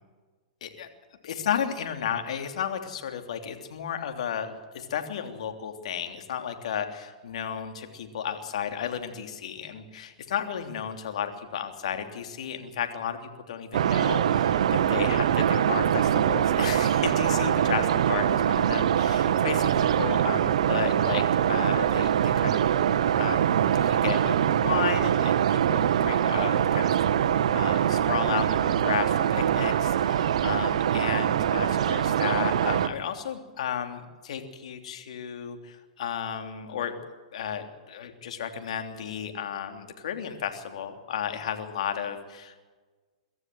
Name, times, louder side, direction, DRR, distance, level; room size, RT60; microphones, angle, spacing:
voice 1, 1.2-26.9 27.5-36.9 37.3-42.6, left 8 dB, 70° left, 6 dB, 3.1 m, -33 dB
sound 1, 13.7-32.9, right 9 dB, 70° right, 1.2 m, -23 dB
24.0 x 14.5 x 7.8 m, 1.3 s
hypercardioid pair, 120°, 4 cm